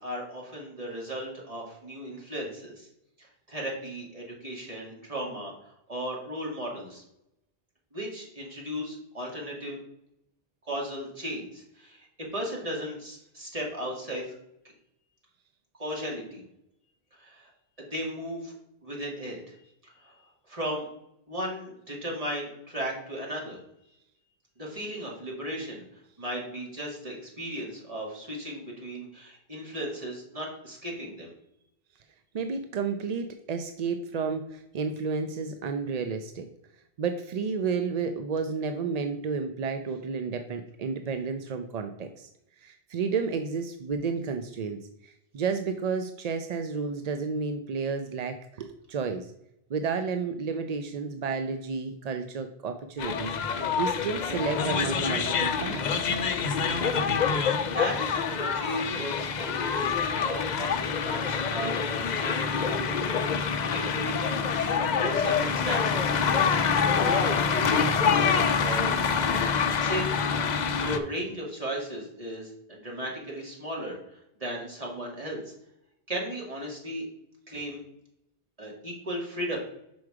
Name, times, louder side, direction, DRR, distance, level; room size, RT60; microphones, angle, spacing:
voice 1, 0.0-2.9 3.2-7.0 7.9-9.8 10.6-14.3 15.8-16.4 17.1-17.5 17.8-18.5 18.8-19.6 19.8-20.9 21.3-23.6 24.6-31.3 57.7-61.8 62.1-63.4 63.7-64.2 64.9-68.9 69.8-75.5 76.1-77.1 77.5-77.8 78.6-79.6, equal, 35° right, -2 dB, 2.2 m, -36 dB
voice 2, 32.3-36.5 37.0-42.3 42.6-49.3 49.7-53.4 53.8-55.8, right 5 dB, 50° right, 7 dB, 0.5 m, -31 dB
sound 1, 53.0-71.0, left 6 dB, 50° left, 0.6 m, -26 dB
6.2 x 4.8 x 4.8 m, 0.79 s
omnidirectional pair, 1.1 m